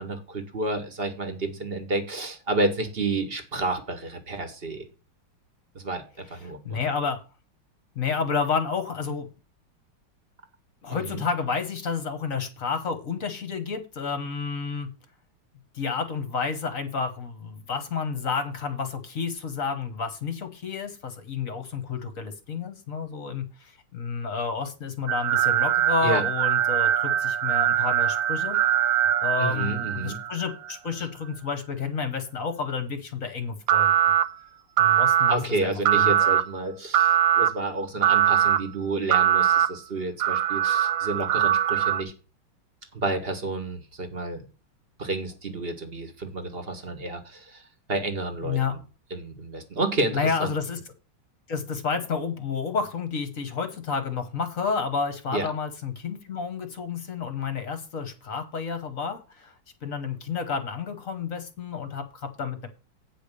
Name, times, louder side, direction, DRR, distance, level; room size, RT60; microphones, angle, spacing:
voice 1, 0.0-4.9 5.7-6.0 6.3-6.9 10.9-11.2 26.0-26.2 29.4-30.2 35.3-42.1 42.9-44.4 45.0-47.6 47.9-48.8 49.1-50.5 55.3-55.5, right 2 dB, 30° right, 7 dB, 1.5 m, -30 dB
voice 2, 6.4-7.2 7.9-9.3 10.8-14.9 15.7-28.6 28.9-33.9 34.8-36.3 48.4-48.7 50.1-50.8 51.5-59.5 59.8-62.7, left 5 dB, 45° left, 9 dB, 1.3 m, -30 dB
sound 1, 25.1-30.4 33.7-34.2 34.8-35.3 35.9-36.4 36.9-37.5 38.0-38.6 39.1-39.7 40.2-42.0, right 11 dB, 70° right, 1.3 m, -22 dB
8.7 x 5.1 x 6.6 m, 0.33 s
omnidirectional pair, 2.3 m